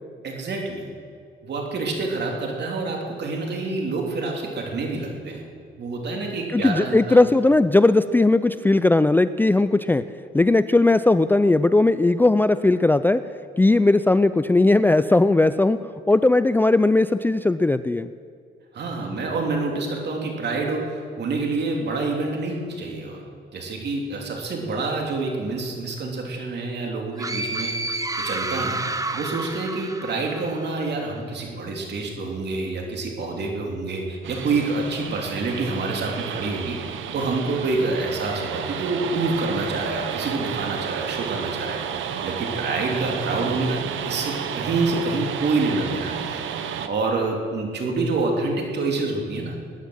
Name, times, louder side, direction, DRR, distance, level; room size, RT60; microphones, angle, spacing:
voice 1, 0.2-0.9 1.4-5.4 5.8-7.2 18.7-23.2 23.5-49.6, right 3 dB, 60° right, 1 dB, 3.0 m, -27 dB
voice 2, 6.5-10.0 10.3-13.2 13.6-18.1, left 2 dB, 10° left, 13 dB, 0.4 m, -18 dB
sound 1, 27.2-30.9, right 2 dB, 15° right, 0.9 m, -30 dB
sound 2, 34.2-46.9, right 8 dB, 80° right, 1.0 m, -31 dB
19.5 x 10.0 x 6.4 m, 2.2 s
cardioid pair, 90°, 20 cm